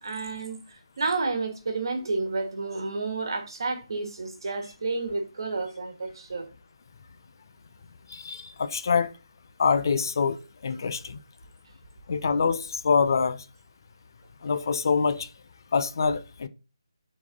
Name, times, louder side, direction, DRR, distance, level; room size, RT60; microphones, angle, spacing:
voice 1, 0.0-6.5, right 3 dB, 50° right, 1.6 m, -31 dB
voice 2, 8.1-9.1 9.6-10.4 10.6-11.2 12.1-13.4 14.4-15.3 15.7-16.5, left 5 dB, 45° left, 0.7 m, -25 dB
7.0 x 4.2 x 3.8 m
figure-of-eight pair, 150°, 3 cm